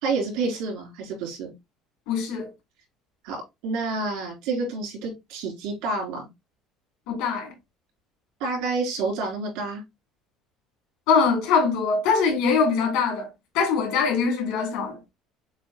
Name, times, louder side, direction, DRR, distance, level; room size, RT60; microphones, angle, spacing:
voice 1, 0.0-1.5 3.2-3.4 3.6-6.2 8.4-9.8, right 3 dB, 85° right, 3.0 m, -28 dB
voice 2, 2.1-2.5 7.1-7.5 11.1-13.3 13.5-15.0, left 5 dB, 80° left, 2.4 m, -22 dB
7.1 x 2.5 x 2.7 m
cardioid pair, 175°, 0 cm